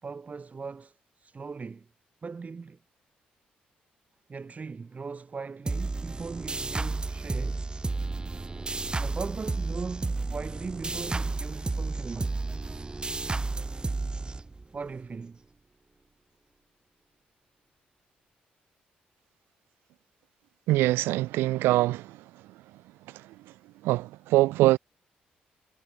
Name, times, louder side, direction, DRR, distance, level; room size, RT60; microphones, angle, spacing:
voice 1, 0.0-1.9 2.2-2.8 4.3-7.6 9.0-12.4 14.7-15.4, right 4 dB, 40° right, 4.2 m, -39 dB
sound 1, 5.7-14.9, right 3 dB, 25° right, 0.6 m, -32 dB
voice 2, 20.7-22.0 23.8-24.8, right 17 dB, 85° right, 0.5 m, -23 dB
supercardioid pair, 55°, 4 cm